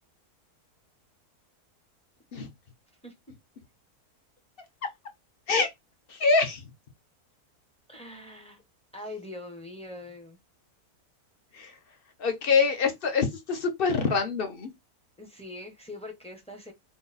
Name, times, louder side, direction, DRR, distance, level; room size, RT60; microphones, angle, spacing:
voice 1, 6.1-6.6 11.5-11.7 12.2-14.7, left 4 dB, 45° left, 0.9 m, -25 dB
voice 2, 7.9-8.6 8.9-10.4 15.2-16.7, left 2 dB, 5° left, 0.7 m, -42 dB
3.8 x 2.4 x 4.0 m
omnidirectional pair, 1.6 m